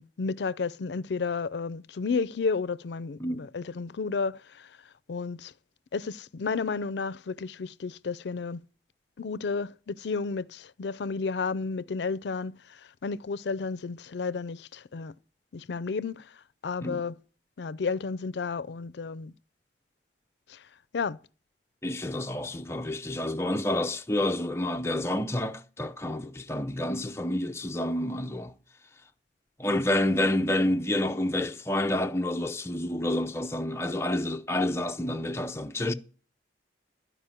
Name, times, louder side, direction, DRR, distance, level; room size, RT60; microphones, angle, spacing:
voice 1, 0.0-4.8 5.1-5.5 5.9-8.6 9.2-15.1 15.5-16.3 16.6-17.2 17.6-19.3 20.5-20.7 20.9-21.2, left 4 dB, 75° left, 0.5 m, -32 dB
voice 2, 21.8-28.6 29.6-35.9, left 1 dB, 15° left, 0.6 m, -29 dB
13.0 x 5.1 x 8.9 m
head